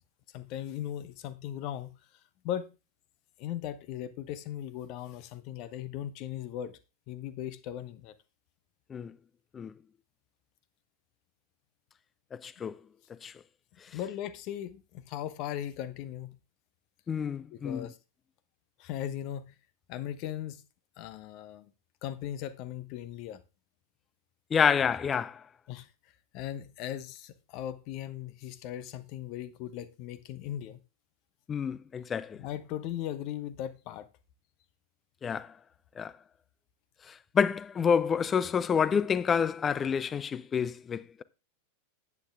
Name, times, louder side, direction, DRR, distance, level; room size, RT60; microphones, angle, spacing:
voice 1, 0.3-1.9 2.4-2.7 3.4-6.7 7.1-8.1 13.9-16.4 17.5-18.0 18.8-19.5 19.9-20.6 21.0-21.7 22.0-23.4 25.7-25.9 26.3-30.8 32.3-34.1, left 11 dB, 40° left, 1.0 m, -38 dB
voice 2, 12.3-12.8 13.2-13.3 17.1-17.9 24.5-25.4 31.5-32.4 35.2-35.5 36.0-36.1 37.1-41.2, left 7 dB, 20° left, 0.5 m, -28 dB
9.9 x 8.4 x 3.5 m
figure-of-eight pair, 90°, 0 cm